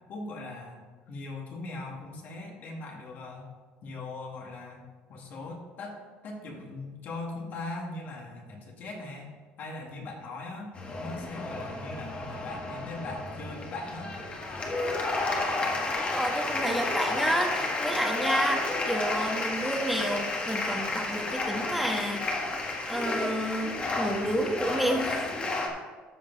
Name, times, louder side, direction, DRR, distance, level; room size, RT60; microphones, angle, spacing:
voice 1, 0.1-0.8 1.1-3.5 3.8-4.8 5.1-14.2, left 2 dB, 50° left, 0 dB, 2.2 m, -40 dB
sound 1, 10.7-25.7, left 2 dB, 30° left, 1.7 m, -31 dB
voice 2, 16.0-22.4 22.9-25.3, equal, ahead, 1 dB, 1.4 m, -30 dB
13.0 x 5.2 x 4.1 m, 1.4 s
cardioid pair, 110°, 4 cm